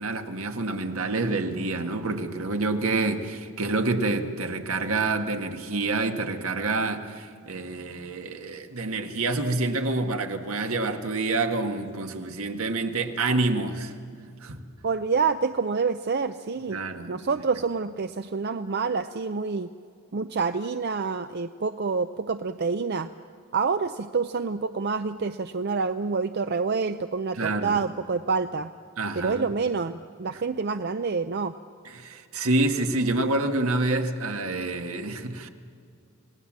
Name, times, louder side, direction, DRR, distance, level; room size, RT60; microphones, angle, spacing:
voice 1, 0.0-13.9 14.4-14.6 16.7-17.1 27.3-27.8 29.0-29.5 30.3-30.4 31.8-35.5, right 2 dB, 75° right, 5 dB, 1.6 m, -27 dB
voice 2, 14.8-16.8 17.1-19.7 20.1-23.1 23.5-28.7 29.2-31.5, right 4 dB, 45° right, 10 dB, 0.5 m, -27 dB
27.5 x 18.5 x 7.4 m, 2.3 s
head